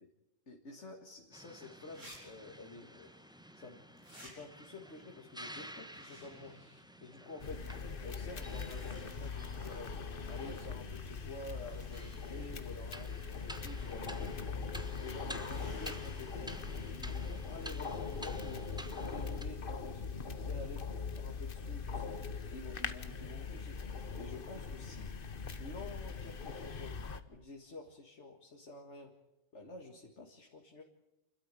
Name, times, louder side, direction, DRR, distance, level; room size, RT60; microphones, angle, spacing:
voice 1, 0.5-3.1 3.5-3.8 4.1-6.5 7.0-7.6 8.0-9.9 10.2-14.4 15.0-16.5 16.9-18.6 19.0-22.1 22.5-23.8 24.1-25.1 25.6-26.9 27.3-29.1 29.5-30.8, left 2 dB, 65° left, 1 dB, 2.3 m, -49 dB
sound 1, 1.2-1.3 1.9-2.2 2.4-2.5 4.0-4.3 5.9-6.8 7.3-7.4 8.1-9.9 11.0-11.1 11.8-12.7 15.1-16.1, equal, 80° right, 7.7 m, -56 dB
sound 2, 1.3-19.4, equal, 5° right, 1.0 m, -52 dB
sound 3, 7.4-27.2, left 5 dB, 45° left, 1.3 m, -41 dB
29.0 x 13.0 x 9.1 m, 0.95 s
omnidirectional pair, 1.3 m